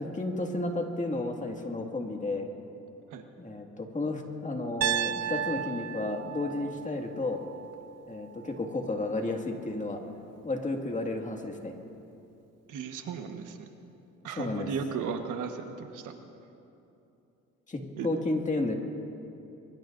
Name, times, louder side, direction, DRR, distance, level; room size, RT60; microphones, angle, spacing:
voice 1, 0.0-2.5 3.4-7.4 8.1-10.0 10.4-11.8 14.4-14.7 17.7-18.8, left 2 dB, 25° left, 2 dB, 2.0 m, -32 dB
Piano, 4.8-8.9, right 10 dB, 60° right, 0.4 m, -35 dB
voice 2, 12.7-13.6 14.2-16.1 18.0-18.1, right 6 dB, 85° right, 5 dB, 1.4 m, -35 dB
24.5 x 22.5 x 2.6 m, 2.8 s
cardioid pair, 90°, 30 cm